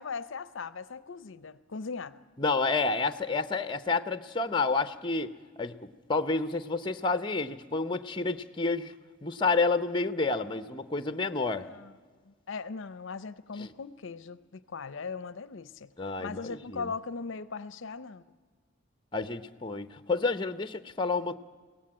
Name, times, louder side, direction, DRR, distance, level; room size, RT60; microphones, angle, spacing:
voice 1, 0.0-2.2 11.6-11.9 12.3-15.9 16.2-18.2, left 4 dB, 60° left, 0.6 m, -39 dB
voice 2, 2.4-5.3 5.6-8.9 9.2-11.7 13.6-13.7 16.0-16.9 19.1-21.4, left 3 dB, 20° left, 0.7 m, -29 dB
22.5 x 17.5 x 8.7 m
head